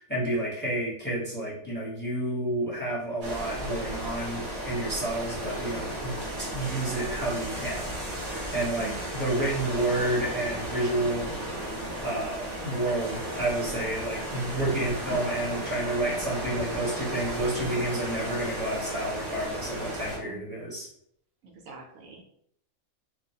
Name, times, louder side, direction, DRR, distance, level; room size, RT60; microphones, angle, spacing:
voice 1, 0.0-8.0 8.2-11.3 12.0-20.9, right 1 dB, 10° left, -7 dB, 1.0 m, -30 dB
sound 1, 3.2-20.2, right 1 dB, 40° right, 0.9 m, -34 dB
voice 2, 8.8-9.2 20.3-20.5 21.4-22.2, right 3 dB, 75° right, 2 dB, 0.9 m, -45 dB
3.1 x 2.4 x 2.7 m, 0.68 s
omnidirectional pair, 1.4 m